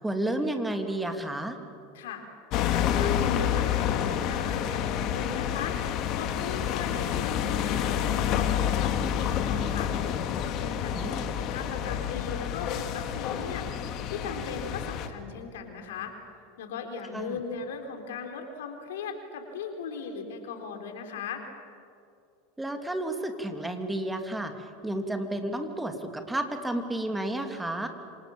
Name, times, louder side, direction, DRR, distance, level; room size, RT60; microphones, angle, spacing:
voice 1, 0.0-1.6 10.9-11.3 17.1-17.4 22.6-24.5 24.8-27.9, right 1 dB, 10° right, 5 dB, 3.0 m, -31 dB
voice 2, 2.5-5.8 6.2-9.9 10.6-13.8 14.1-16.1 16.6-21.4, left 5 dB, 70° left, 4 dB, 3.9 m, -38 dB
sound 1, 2.5-15.1, left 9 dB, 50° left, 2.1 m, -28 dB
27.5 x 26.0 x 7.4 m, 2.4 s
hypercardioid pair, 85°, 0 cm